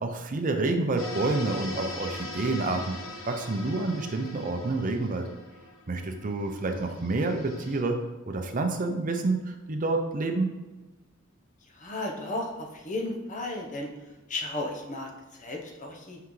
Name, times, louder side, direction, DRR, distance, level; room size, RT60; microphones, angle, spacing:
voice 1, 0.0-3.0 3.3-5.3 5.9-8.0 8.3-10.5, right 3 dB, 40° right, 5 dB, 0.6 m, -28 dB
sound 1, 1.0-7.8, left 2 dB, 65° left, 1.1 m, -41 dB
voice 2, 11.7-13.9 14.3-16.3, left 2 dB, 35° left, 1 dB, 0.9 m, -34 dB
5.8 x 5.7 x 3.2 m, 1.1 s
head